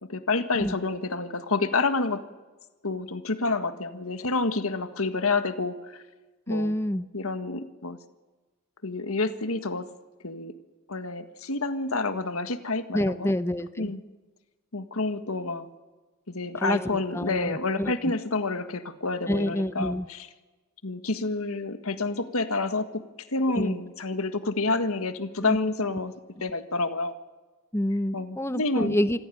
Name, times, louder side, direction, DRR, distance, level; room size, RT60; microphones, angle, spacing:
voice 1, 0.0-2.2 2.8-6.0 6.5-6.7 7.1-8.0 8.8-9.9 10.2-10.5 10.9-13.3 13.8-14.0 14.7-15.7 16.3-20.3 20.8-23.0 23.3-26.1 26.4-27.1 28.1-29.2, left 3 dB, 75° left, 10 dB, 1.7 m, -28 dB
voice 2, 6.5-7.1 12.9-13.9 16.6-18.1 19.3-20.1 23.6-23.8 25.4-25.6 27.7-29.2, equal, 10° left, 12 dB, 0.7 m, -27 dB
26.5 x 15.5 x 9.2 m, 1.2 s
head